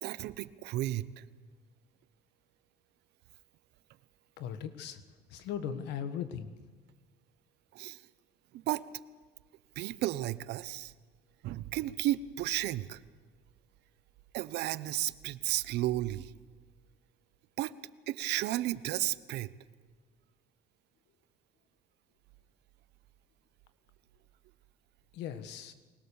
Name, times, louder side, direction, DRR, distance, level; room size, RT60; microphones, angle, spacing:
voice 1, 0.0-1.2 7.7-8.0 8.5-8.8 9.8-10.9 11.4-13.0 14.3-16.3 17.6-17.7 18.1-19.5, right 15 dB, 80° right, 16 dB, 0.9 m, -33 dB
voice 2, 4.4-5.0 5.3-6.5 25.1-25.7, left 8 dB, 85° left, 10 dB, 1.6 m, -38 dB
24.5 x 19.5 x 7.1 m, 1.4 s
cardioid pair, 110°, 17 cm